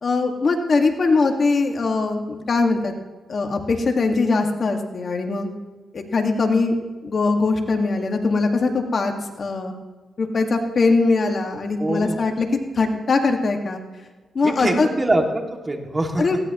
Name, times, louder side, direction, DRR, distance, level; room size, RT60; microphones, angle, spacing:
voice 1, 0.0-2.9 3.3-5.5 5.9-6.7 7.0-9.1 9.4-9.7 10.2-12.5 12.7-13.8 14.3-14.9 16.2-16.4, left 3 dB, 50° left, 3 dB, 1.9 m, -21 dB
voice 2, 11.8-12.2 14.4-16.4, right 1 dB, 25° right, 2 dB, 2.4 m, -23 dB
19.5 x 17.0 x 3.1 m, 1.3 s
cardioid pair, 85°, 0 cm